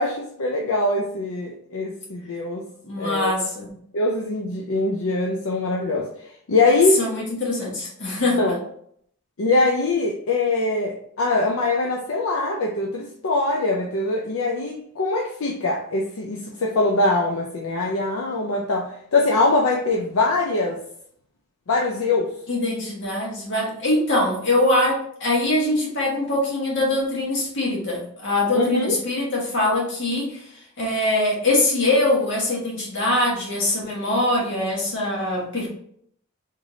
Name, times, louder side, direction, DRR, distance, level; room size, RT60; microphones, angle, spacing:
voice 1, 0.0-2.6 3.0-3.3 3.9-6.1 6.5-7.0 8.4-8.6 9.4-20.8 21.7-22.3 28.5-29.0, left 2 dB, 80° left, 0 dB, 0.5 m, -22 dB
voice 2, 2.8-3.7 7.0-8.4 22.5-30.5 30.8-35.7, left 1 dB, 60° left, -3 dB, 1.4 m, -23 dB
3.7 x 3.3 x 2.7 m, 0.67 s
head